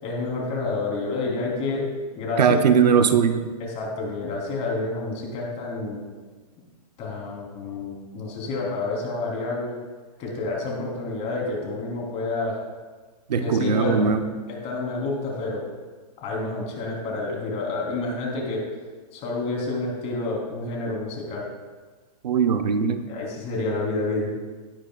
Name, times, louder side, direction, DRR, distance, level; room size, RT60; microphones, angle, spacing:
voice 1, 0.0-1.9 2.2-2.6 3.6-6.0 7.0-9.7 10.2-12.6 13.4-14.1 14.5-15.6 16.2-18.6 19.1-21.5 23.1-24.3, left 3 dB, 30° left, -2 dB, 3.9 m, -29 dB
voice 2, 2.4-3.4 13.3-14.2 22.2-23.0, right 6 dB, 80° right, 8 dB, 1.0 m, -20 dB
17.5 x 11.0 x 2.5 m, 1.4 s
hypercardioid pair, 135°, 21 cm